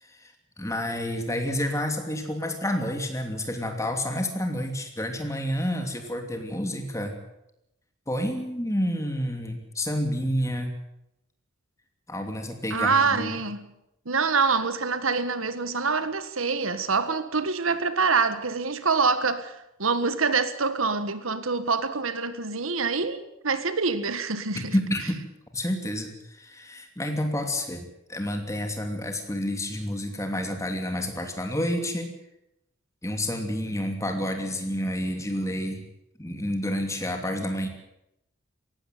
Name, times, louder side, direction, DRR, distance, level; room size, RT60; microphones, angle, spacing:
voice 1, 0.0-7.2 8.1-10.7 12.1-13.4 24.7-25.2 25.5-32.1 33.0-35.8 36.2-37.7, equal, 15° left, 2.8 m, -29 dB
voice 2, 12.7-13.7 14.0-24.7, right 4 dB, 85° right, 1.5 m, -25 dB
18.5 x 16.0 x 9.4 m
head